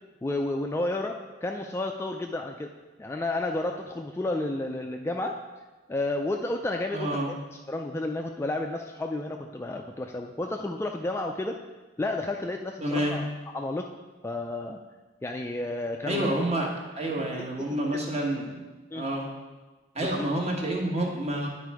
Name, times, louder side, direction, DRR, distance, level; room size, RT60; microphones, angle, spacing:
voice 1, 0.2-2.7 3.0-5.4 5.9-7.4 7.7-11.6 12.0-13.3 13.5-13.9 14.2-14.8 15.2-16.5 17.2-18.0 18.9-19.1 20.0-20.3, left 2 dB, 15° left, 3 dB, 0.3 m, -31 dB
voice 2, 6.9-7.3 12.8-13.2 16.0-16.7 17.0-18.6 18.9-19.3 19.9-21.5, right 1 dB, 35° right, 0 dB, 1.3 m, -28 dB
9.9 x 4.2 x 4.7 m, 1.2 s
head